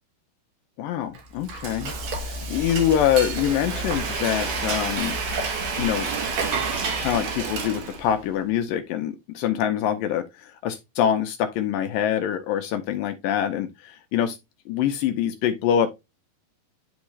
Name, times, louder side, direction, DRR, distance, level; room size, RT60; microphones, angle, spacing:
voice 1, 0.8-1.9 2.2-5.2 5.8-6.1 7.0-14.4 14.7-15.9, left 9 dB, 80° left, 2.0 m, -25 dB
Frying (food), 1.1-8.2, right 4 dB, 60° right, 2.6 m, -29 dB
10.5 x 3.5 x 3.2 m
omnidirectional pair, 4.6 m